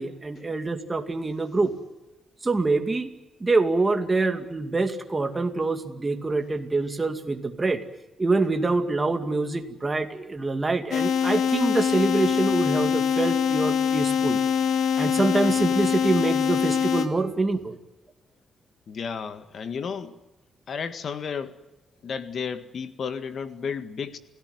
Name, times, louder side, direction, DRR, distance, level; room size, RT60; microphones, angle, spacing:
voice 1, 0.0-1.7 2.4-3.1 3.4-7.8 8.2-14.4 15.0-17.8, right 3 dB, 20° right, 6 dB, 2.4 m, -25 dB
sound 1, 10.9-17.1, left 7 dB, 90° left, 2.3 m, -23 dB
voice 2, 18.9-20.2 20.7-21.6 22.0-24.2, left 6 dB, 50° left, 10 dB, 1.8 m, -32 dB
29.0 x 17.5 x 9.5 m, 1.1 s
wide cardioid pair, 165°, 0 cm